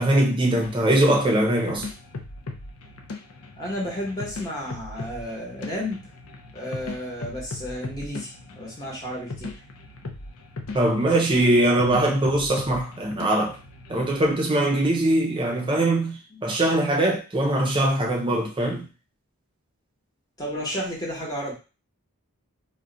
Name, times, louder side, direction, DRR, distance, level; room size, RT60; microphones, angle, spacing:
voice 1, 0.0-1.9 10.7-13.5 13.9-18.9, right 1 dB, 20° right, 0.5 m, -22 dB
sound 1, 0.6-14.3, left 3 dB, 85° left, 0.5 m, -39 dB
voice 2, 3.6-6.0 6.5-9.5 16.3-16.4 20.4-21.5, equal, 15° left, 1.0 m, -32 dB
2.4 x 2.2 x 3.8 m
head